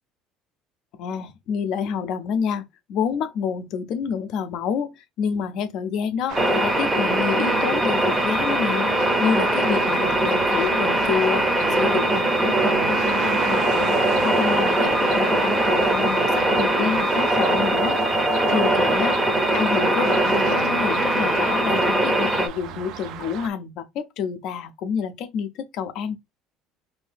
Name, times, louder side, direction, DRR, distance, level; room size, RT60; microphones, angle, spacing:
voice 1, 0.9-8.9 9.2-11.5 11.8-19.2 19.5-26.2, left 7 dB, 50° left, 0.5 m, -28 dB
sound 1, 6.3-22.5, right 1 dB, 5° right, 0.6 m, -21 dB
sound 2, 6.3-23.5, right 10 dB, 50° right, 0.4 m, -34 dB
2.7 x 2.7 x 3.4 m
cardioid pair, 170°, 0 cm